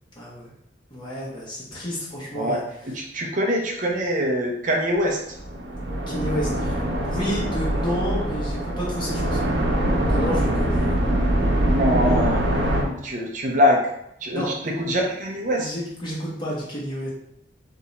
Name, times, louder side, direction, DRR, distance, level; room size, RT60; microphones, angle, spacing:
voice 1, 0.2-0.5 0.9-2.6 6.1-9.5 10.0-11.0 14.3-14.5 15.6-17.1, equal, 25° left, -5 dB, 1.2 m, -31 dB
voice 2, 2.9-5.2 11.7-12.4 13.0-13.9 14.2-15.7, equal, 40° right, 0 dB, 0.6 m, -23 dB
sound 1, 5.3-12.8, right 1 dB, 70° right, 0.9 m, -23 dB
3.6 x 2.8 x 4.0 m, 0.77 s
head